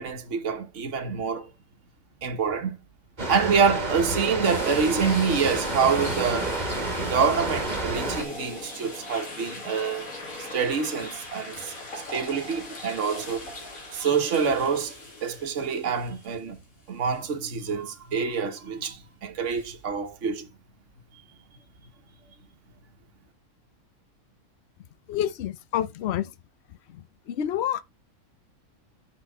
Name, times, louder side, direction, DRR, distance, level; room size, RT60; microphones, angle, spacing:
voice 1, 0.0-1.5 2.2-2.8 3.3-6.6 7.1-11.7 12.1-13.5 13.9-15.0 15.2-16.6 16.9-20.5, right 6 dB, 60° right, 1.5 m, -26 dB
Water, 3.2-8.2, right 2 dB, 30° right, 1.7 m, -30 dB
sound 1, 4.4-16.6 17.1-17.2 19.5-19.7, left 2 dB, 80° left, 2.7 m, -39 dB
voice 2, 25.1-26.3 26.9-27.8, left 10 dB, 60° left, 0.9 m, -28 dB
6.0 x 5.4 x 5.4 m
omnidirectional pair, 1.5 m